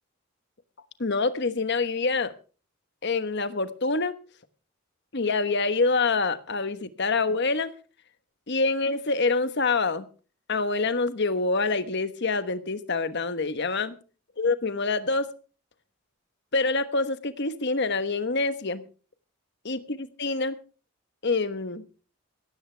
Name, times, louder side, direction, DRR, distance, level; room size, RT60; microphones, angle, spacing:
voice 1, 1.0-2.3 3.0-4.1 5.1-7.7 8.5-10.1 10.5-13.9 14.4-15.3 16.5-18.8 19.6-20.6 21.2-21.8, left 3 dB, 50° left, 11 dB, 1.2 m, -26 dB
17.0 x 15.5 x 3.4 m, 0.37 s
head